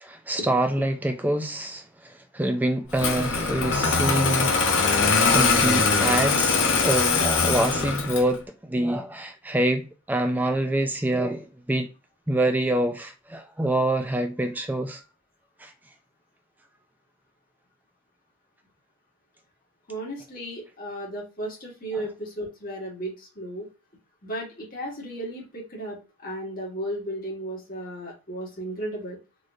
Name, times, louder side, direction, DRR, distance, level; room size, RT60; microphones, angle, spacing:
voice 1, 0.0-1.8 2.3-4.5 5.0-11.9 12.3-15.0 15.6-15.7, right 1 dB, 10° right, 0.4 m, -26 dB
Engine starting, 3.0-8.4, left 4 dB, 60° left, 0.8 m, -22 dB
voice 2, 19.9-23.7 24.2-29.2, right 1 dB, 40° left, 1.7 m, -34 dB
3.9 x 3.1 x 2.5 m
head